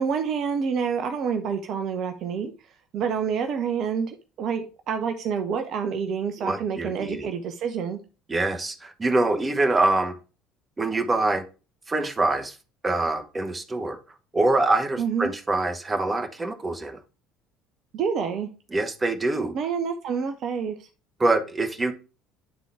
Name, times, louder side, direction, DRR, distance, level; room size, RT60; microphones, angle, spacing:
voice 1, 0.0-2.5 2.9-8.0 15.0-15.4 17.9-18.5 19.5-20.8, right 6 dB, 50° right, 7 dB, 0.6 m, -28 dB
voice 2, 6.4-7.3 8.3-10.1 10.8-11.4 11.9-12.5 12.8-14.0 14.3-17.0 18.7-19.6 21.2-21.9, right 2 dB, 20° right, 7 dB, 1.0 m, -24 dB
9.7 x 3.7 x 3.5 m, 0.34 s
figure-of-eight pair, 60°, 0 cm